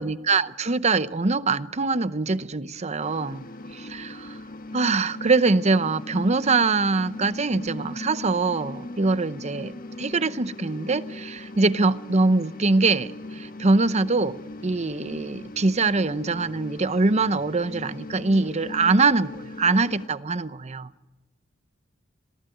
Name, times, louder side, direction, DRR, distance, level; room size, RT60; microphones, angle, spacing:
voice 1, 0.0-4.4 4.7-20.9, right 3 dB, 35° right, 0.8 m, -23 dB
sound 1, 3.0-20.1, left 2 dB, 45° left, 1.4 m, -39 dB
27.0 x 18.5 x 9.3 m
head